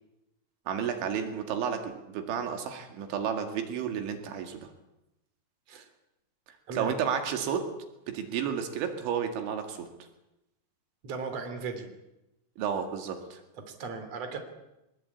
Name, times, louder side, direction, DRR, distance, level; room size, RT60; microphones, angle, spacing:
voice 1, 0.7-4.7 6.7-7.7 8.1-9.9 12.6-13.4, right 7 dB, 85° right, 5 dB, 4.4 m, -32 dB
voice 2, 11.0-11.9 13.6-14.4, right 4 dB, 40° right, 6 dB, 3.8 m, -37 dB
23.0 x 21.5 x 8.6 m, 0.93 s
omnidirectional pair, 5.2 m